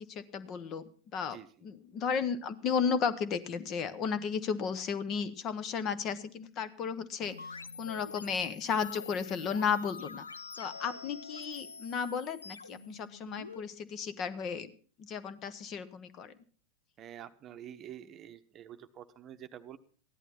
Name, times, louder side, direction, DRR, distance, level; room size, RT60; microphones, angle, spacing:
voice 1, 0.1-0.8 1.1-7.4 7.8-10.2 10.6-14.7 15.0-16.3, left 6 dB, 35° left, 14 dB, 1.0 m, -34 dB
sound 1, 7.2-13.6, left 4 dB, 75° left, 0.5 m, -46 dB
voice 2, 17.0-19.8, right 10 dB, 30° right, 9 dB, 0.9 m, -47 dB
15.0 x 11.0 x 5.9 m, 0.43 s
figure-of-eight pair, 90°, 0 cm